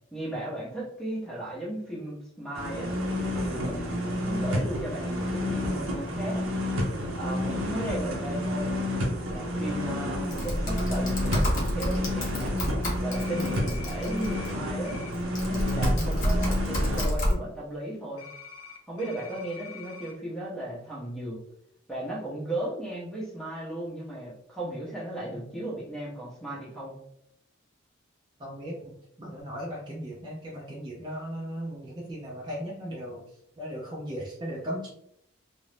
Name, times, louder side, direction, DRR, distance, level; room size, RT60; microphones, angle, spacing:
voice 1, 0.1-2.9 3.3-6.4 7.1-8.7 9.3-12.6 13.0-15.0 15.4-18.3 18.9-21.4 21.9-26.9, right 1 dB, ahead, -5 dB, 0.8 m, -36 dB
sound 1, 2.5-17.0, left 1 dB, 70° right, 0.6 m, -30 dB
Typing, 10.3-14.5 15.1-17.3, equal, 40° left, 0.8 m, -29 dB
sound 2, 13.1-14.5 14.8-15.1 18.2-20.1, left 6 dB, 80° left, 0.5 m, -45 dB
voice 2, 15.9-16.3 28.4-28.9 29.2-33.2 33.6-34.9, equal, 20° right, -5 dB, 0.5 m, -37 dB
2.5 x 2.0 x 3.1 m, 0.74 s
head